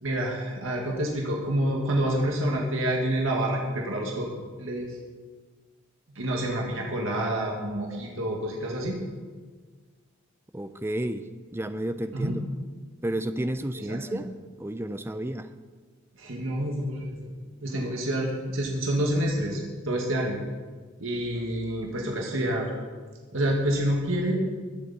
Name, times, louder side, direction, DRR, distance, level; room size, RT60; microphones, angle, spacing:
voice 1, 0.0-4.3 4.6-5.0 6.1-9.0 12.1-12.3 13.9-14.2 16.2-17.3 17.6-20.4 21.0-22.7 23.3-24.3, right 1 dB, 75° right, -1 dB, 1.9 m, -28 dB
voice 2, 10.5-12.4 13.0-14.3 14.6-15.5, right 1 dB, 10° right, 10 dB, 0.5 m, -31 dB
21.0 x 7.8 x 4.2 m, 1.5 s
head